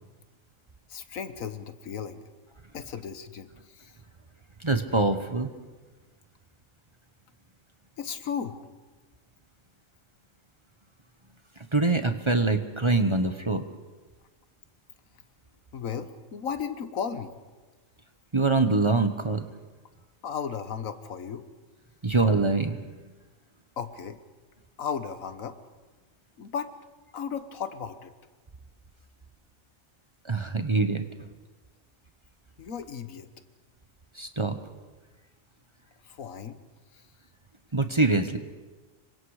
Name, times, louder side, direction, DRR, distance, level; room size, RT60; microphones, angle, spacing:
voice 1, 0.9-2.2 2.7-4.0 8.0-8.7 15.7-17.3 20.2-21.5 23.8-24.2 24.8-25.6 26.4-26.7 27.1-28.1 32.6-33.3 36.0-36.6 36.9-37.0, left 7 dB, 85° left, 10 dB, 1.6 m, -35 dB
voice 2, 4.6-5.5 11.7-13.6 18.3-19.5 22.0-22.8 30.2-31.3 34.1-34.6 37.7-38.4, right 3 dB, 25° right, 8 dB, 0.9 m, -24 dB
26.0 x 24.0 x 4.9 m, 1.3 s
omnidirectional pair, 1.4 m